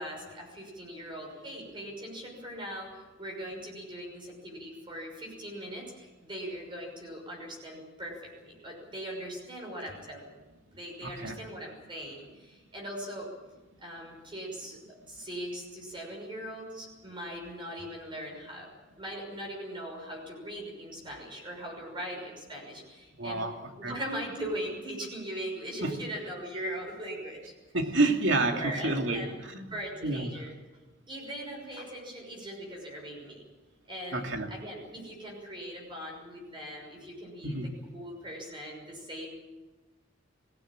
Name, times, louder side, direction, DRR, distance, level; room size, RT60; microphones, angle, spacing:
voice 1, 0.0-10.3 10.7-13.3 13.8-14.8 15.1-18.7 19.0-23.5 23.8-27.4 28.4-29.3 29.7-30.5 31.1-33.4 33.9-39.3, equal, 25° right, -1 dB, 6.2 m, -40 dB
voice 2, 11.0-11.4 23.2-23.5 23.8-24.0 25.8-25.9 27.7-29.7 30.0-30.3 34.1-34.5 37.4-37.7, right 2 dB, 70° right, 4 dB, 2.7 m, -29 dB
22.0 x 17.0 x 8.9 m, 1.2 s
head